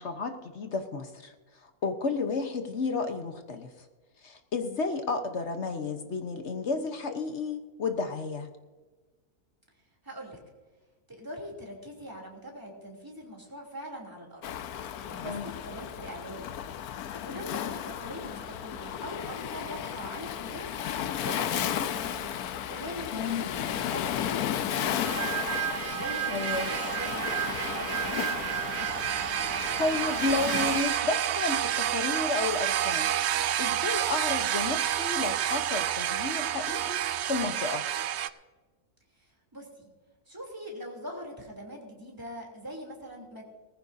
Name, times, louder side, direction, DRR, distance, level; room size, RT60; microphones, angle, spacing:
voice 1, 0.0-1.3 1.8-3.7 4.2-8.5 15.2-15.5 23.1-23.5 26.3-26.7 29.8-33.1 33.6-37.0 37.3-37.8, left 4 dB, 50° left, 7 dB, 1.2 m, -32 dB
voice 2, 10.0-10.4 11.1-14.4 15.1-16.6 17.3-20.7 21.2-22.3 22.7-23.1 23.4-25.4 25.9-27.4 27.7-28.5 39.5-39.9 40.3-43.4, equal, 15° right, -1 dB, 3.1 m, -42 dB
Waves surf, 14.4-30.8, left 10 dB, 80° left, 1.2 m, -34 dB
sound 1, 25.0-38.3, right 11 dB, 70° right, 0.6 m, -29 dB
19.0 x 15.0 x 2.7 m, 1.3 s
omnidirectional pair, 1.6 m